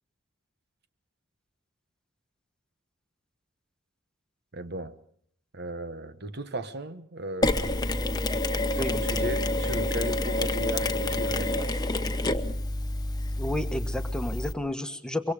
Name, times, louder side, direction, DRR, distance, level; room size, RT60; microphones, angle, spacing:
voice 1, 4.5-4.9 5.5-7.9 8.7-11.7, right 1 dB, 55° right, 1.1 m, -36 dB
Mechanisms, 7.4-14.5, left 1 dB, 20° left, 1.0 m, -28 dB
voice 2, 13.4-15.3, left 1 dB, 5° left, 1.3 m, -31 dB
24.0 x 24.0 x 5.0 m
head